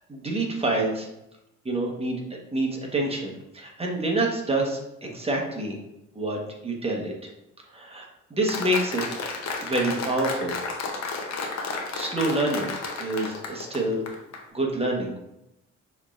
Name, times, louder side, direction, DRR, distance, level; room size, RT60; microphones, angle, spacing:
voice 1, 0.1-1.1 1.6-2.2 2.5-5.8 6.1-7.3 7.7-9.0 9.6-10.5 11.1-11.3 11.9-14.2 14.5-15.2, right 2 dB, 20° right, -1 dB, 1.1 m, -27 dB
Applause, 8.5-14.4, left 4 dB, 65° left, 0.8 m, -32 dB
6.3 x 3.2 x 2.4 m, 0.87 s
cardioid pair, 90°, 30 cm